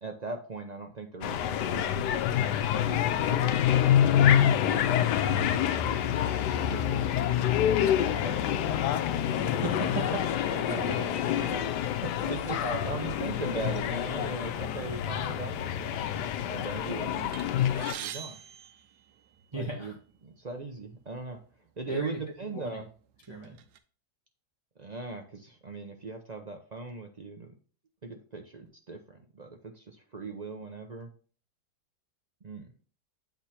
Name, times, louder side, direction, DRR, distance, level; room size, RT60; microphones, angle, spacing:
voice 1, 0.0-2.3 2.7-5.2 6.0-7.1 8.2-8.9 12.2-12.6 12.8-16.1 16.5-17.7 18.0-18.4 19.5-19.9 20.2-21.4 21.8-22.9 24.8-27.5 28.0-31.1 32.4-32.7, right 3 dB, 45° right, 3 dB, 0.5 m, -40 dB
sound 1, 1.2-17.9, left 10 dB, 90° left, 1.2 m, -27 dB
voice 2, 9.4-11.7 12.0-12.1 12.5-12.8 19.5-19.9 21.9-22.2 22.5-22.8 23.3-23.6, right 2 dB, 20° right, -1 dB, 0.9 m, -36 dB
sound 2, 17.3-19.7 20.5-20.6 20.9-21.1 22.0-22.1 22.6-23.8, right 10 dB, 85° right, 1.2 m, -44 dB
8.1 x 3.5 x 4.2 m, 0.40 s
omnidirectional pair, 1.8 m